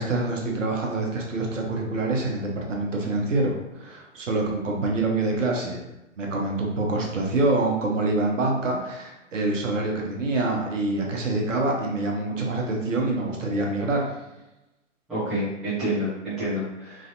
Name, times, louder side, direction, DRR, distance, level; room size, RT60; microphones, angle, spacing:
voice 1, 0.0-5.8 6.2-14.1, right 2 dB, 70° right, 0 dB, 0.9 m, -26 dB
voice 2, 15.1-17.1, equal, ahead, -15 dB, 0.5 m, -28 dB
3.2 x 2.6 x 2.6 m, 0.97 s
figure-of-eight pair, 130°, 39 cm